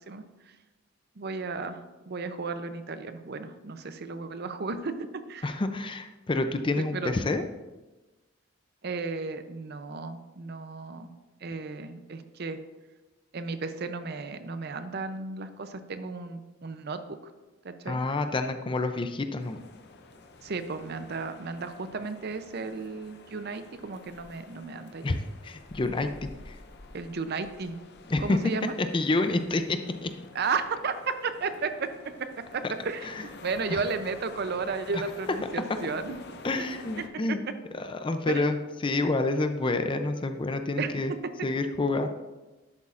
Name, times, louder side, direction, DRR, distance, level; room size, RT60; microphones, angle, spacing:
voice 1, 1.2-5.6 6.8-7.1 8.8-11.1 11.4-12.6 13.3-17.0 17.6-18.0 20.4-25.1 26.9-27.8 28.2-28.7 30.3-31.9 32.2-32.3 32.5-36.1 36.6-36.7 37.0-37.4 38.3-38.4 40.8-40.9, right 4 dB, 50° right, 10 dB, 0.6 m, -34 dB
voice 2, 5.4-7.4 17.9-19.6 25.0-26.1 26.5-26.6 28.1-28.4 28.8-30.1 32.6-32.7 33.2-33.3 33.7-33.8 34.9-35.0 36.4-37.4 37.7-38.6 38.8-41.1 41.4-42.1, left 2 dB, 25° left, 8 dB, 0.5 m, -28 dB
sound 1, 19.4-37.1, left 3 dB, 55° left, 0.7 m, -49 dB
11.0 x 8.3 x 2.5 m, 1.1 s
head